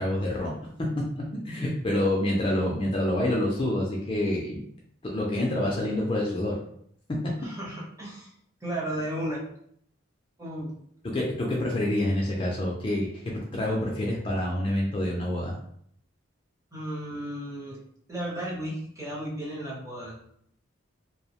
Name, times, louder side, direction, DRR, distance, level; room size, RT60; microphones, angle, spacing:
voice 1, 0.0-4.6 5.0-6.6 7.2-7.3 11.0-15.6, left 1 dB, 25° left, -3 dB, 0.3 m, -27 dB
voice 2, 7.4-8.3 8.6-9.4 10.4-10.7 16.7-17.8 18.1-20.1, right 1 dB, 15° right, -5 dB, 0.7 m, -34 dB
2.5 x 2.0 x 2.8 m, 0.67 s
head